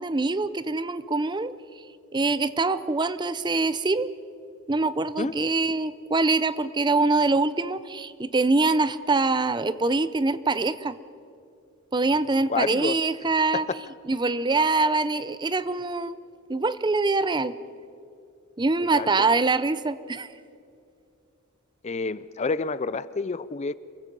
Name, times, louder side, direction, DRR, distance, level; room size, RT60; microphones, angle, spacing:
voice 1, 0.0-1.5 2.1-4.1 4.7-11.0 11.9-13.7 14.1-16.2 16.5-17.5 18.6-20.3, right 3 dB, 20° right, 15 dB, 0.6 m, -24 dB
voice 2, 12.5-13.0 13.5-13.8 18.9-19.1 21.8-23.7, left 4 dB, 30° left, 17 dB, 0.5 m, -28 dB
27.5 x 23.5 x 5.4 m, 2.5 s
head